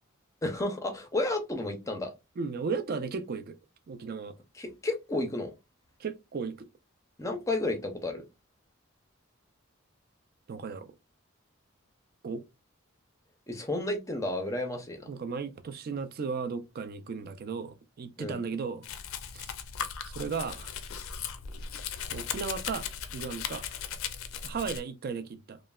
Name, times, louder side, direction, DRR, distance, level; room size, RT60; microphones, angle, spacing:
voice 1, 0.4-2.1 4.6-5.5 7.2-8.2 13.5-15.1 18.2-18.4, left 2 dB, 15° left, 0.5 m, -32 dB
voice 2, 2.4-3.6 3.9-4.3 6.0-6.7 10.5-10.9 12.2-12.4 15.0-18.9 19.3-19.5 20.1-20.7 22.1-22.9 23.1-23.7 24.4-25.6, right 5 dB, 45° right, 0.4 m, -35 dB
Domestic sounds home sounds, 18.8-24.8, left 7 dB, 80° left, 0.4 m, -37 dB
3.0 x 2.0 x 2.3 m
head